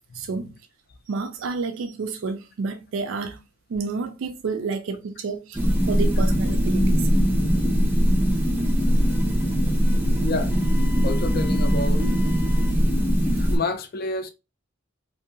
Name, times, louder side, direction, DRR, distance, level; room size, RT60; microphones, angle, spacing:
voice 1, 0.1-0.5 1.1-3.4 3.7-5.6 5.9-7.0, right 4 dB, 70° right, 0.4 m, -30 dB
sound 1, 5.5-13.6, equal, 10° right, 0.4 m, -21 dB
voice 2, 10.2-10.5 11.0-12.1 12.5-12.6 13.4-14.3, left 3 dB, 45° left, 0.4 m, -29 dB
2.6 x 2.2 x 2.7 m
head